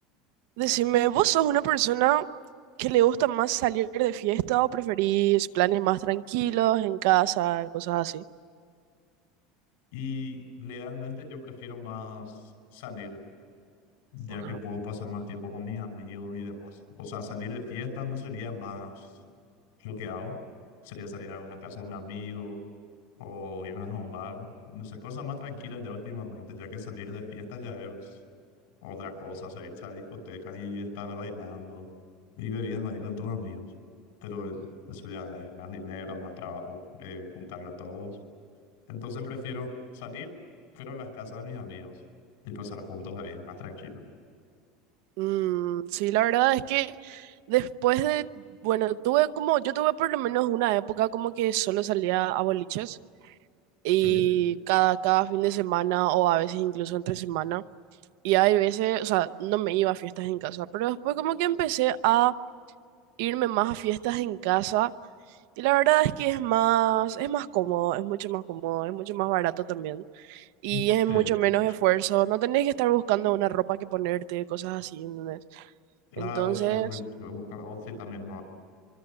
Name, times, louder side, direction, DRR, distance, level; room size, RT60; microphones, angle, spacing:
voice 1, 0.6-2.2 2.8-8.2 14.4-14.6 45.2-48.3 48.6-53.0 53.8-57.6 58.2-62.3 63.2-64.9 65.6-75.7 76.2-76.9, right 15 dB, 70° right, 12 dB, 0.7 m, -25 dB
voice 2, 9.9-13.2 14.1-19.1 19.8-20.4 20.8-22.6 23.2-28.2 28.8-31.9 32.4-33.7 34.2-38.2 38.9-40.3 40.7-41.9 42.4-44.0 54.0-54.3 70.7-71.3 76.1-78.4, left 4 dB, 85° left, 5 dB, 5.9 m, -38 dB
24.5 x 24.0 x 8.9 m, 2.2 s
supercardioid pair, 150°, 0 cm